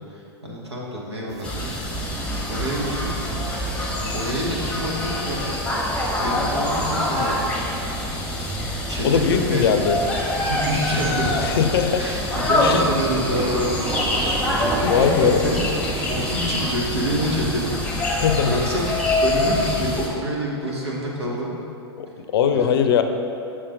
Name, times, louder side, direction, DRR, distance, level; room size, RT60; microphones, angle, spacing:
voice 1, 0.1-1.7 2.5-3.1 4.1-5.5 6.2-7.8 8.9-9.8 10.4-11.4 11.9-13.9 14.2-15.7 16.1-19.0 19.2-21.5 22.5-22.8, equal, 80° right, -3 dB, 1.4 m, -27 dB
sound 1, 1.3-17.8, right 4 dB, 25° right, 0.5 m, -35 dB
sound 2, 1.4-20.1, left 1 dB, 10° left, 1.1 m, -25 dB
voice 2, 9.0-10.0 11.4-12.0 12.6-12.8 14.4-14.6 14.9-15.4 18.2-18.5 22.0-23.0, left 7 dB, 60° left, 7 dB, 0.5 m, -20 dB
6.6 x 5.7 x 3.8 m, 2.7 s
figure-of-eight pair, 95°, 14 cm